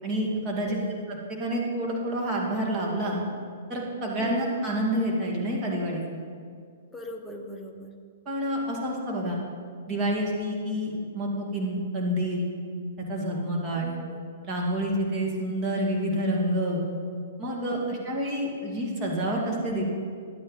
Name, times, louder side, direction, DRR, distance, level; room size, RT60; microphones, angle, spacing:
voice 1, 0.0-0.8 1.1-3.2 3.7-6.0 8.3-9.4 9.9-12.5 13.1-13.8 14.4-16.8 17.4-19.8, equal, 30° right, -2 dB, 2.3 m, -28 dB
voice 2, 0.7-1.1 4.2-4.6 6.9-8.0 13.7-14.2 17.7-18.2, left 1 dB, 5° left, 1 dB, 1.0 m, -41 dB
11.0 x 8.8 x 4.0 m, 2.2 s
hypercardioid pair, 115°, 0 cm